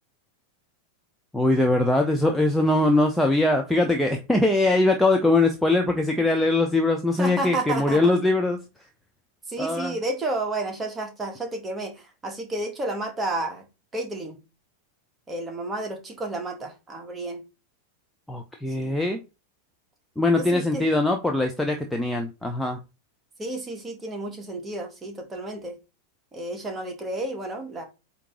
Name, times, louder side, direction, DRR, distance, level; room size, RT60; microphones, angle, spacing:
voice 1, 1.3-8.6 9.6-10.0 18.3-19.2 20.2-22.8, left 2 dB, 5° left, 0.8 m, -22 dB
voice 2, 7.2-8.1 9.5-13.6 13.9-14.4 15.3-17.4 18.8-19.0 20.3-20.9 23.4-25.8 26.3-27.8, right 2 dB, 15° right, 1.8 m, -31 dB
8.4 x 3.0 x 3.7 m
figure-of-eight pair, 90°, 0 cm